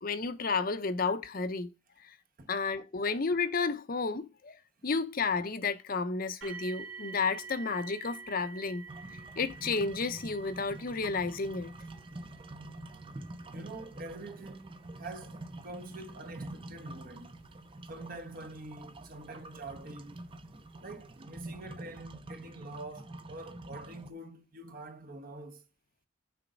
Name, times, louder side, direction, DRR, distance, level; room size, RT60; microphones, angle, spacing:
voice 1, 0.0-1.7 2.0-2.1 2.5-4.6 4.8-8.9 9.4-11.8, left 4 dB, 50° left, 0.7 m, -32 dB
sound 1, 6.4-19.3 20.1-20.2 20.8-20.9, right 5 dB, 70° right, 2.9 m, -50 dB
sound 2, 8.9-24.1, right 1 dB, 25° right, 0.5 m, -47 dB
voice 2, 13.5-17.4 17.9-20.2 20.8-25.6, right 2 dB, 45° right, 1.2 m, -45 dB
6.9 x 5.1 x 5.1 m
head